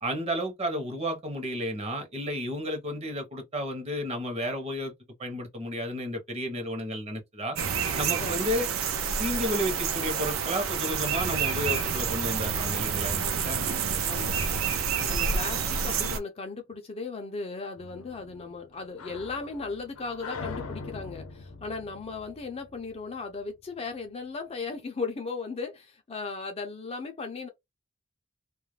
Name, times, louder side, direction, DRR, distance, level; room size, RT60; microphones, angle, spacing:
voice 1, 0.0-4.9 5.2-7.6 7.9-8.7 9.2-13.6, equal, 30° right, 0.8 m, -32 dB
sound 1, 7.6-16.2, right 6 dB, 65° right, 0.5 m, -28 dB
voice 2, 13.6-14.3 15.1-27.5, left 4 dB, 30° left, 0.4 m, -37 dB
sound 2, 17.8-23.2, left 4 dB, 80° left, 0.6 m, -42 dB
2.3 x 2.1 x 3.1 m
head